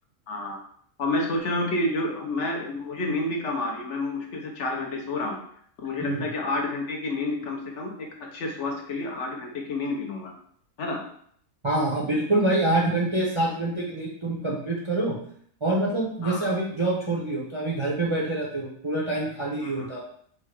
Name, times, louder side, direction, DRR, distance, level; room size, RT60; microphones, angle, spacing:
voice 1, 0.3-0.6 1.0-5.4 5.8-10.3 10.8-11.0 16.2-16.5 19.6-19.9, left 2 dB, 60° left, 1 dB, 1.0 m, -29 dB
voice 2, 11.6-15.2 15.6-20.0, right 2 dB, 30° right, -4 dB, 0.6 m, -26 dB
4.6 x 2.1 x 4.7 m, 0.62 s
omnidirectional pair, 1.4 m